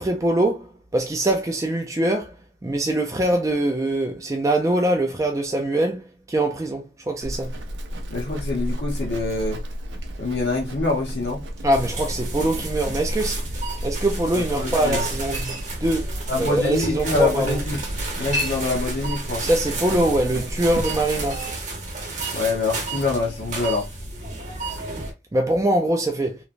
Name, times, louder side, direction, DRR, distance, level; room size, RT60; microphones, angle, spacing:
voice 1, 0.0-2.3 2.6-7.5 11.6-13.4 13.8-15.5 15.8-16.1 16.4-17.6 19.4-21.5 25.3-26.4, right 1 dB, 15° right, 0.3 m, -23 dB
Livestock farm animals working animals, 7.2-21.5, equal, 75° right, 0.5 m, -32 dB
voice 2, 8.1-9.6 10.2-11.5 14.3-15.1 16.3-17.8 18.2-19.4 22.3-23.9, left 3 dB, 65° left, 0.8 m, -25 dB
sound 1, 11.7-25.1, right 2 dB, 40° right, 0.9 m, -32 dB
3.0 x 2.1 x 2.4 m
head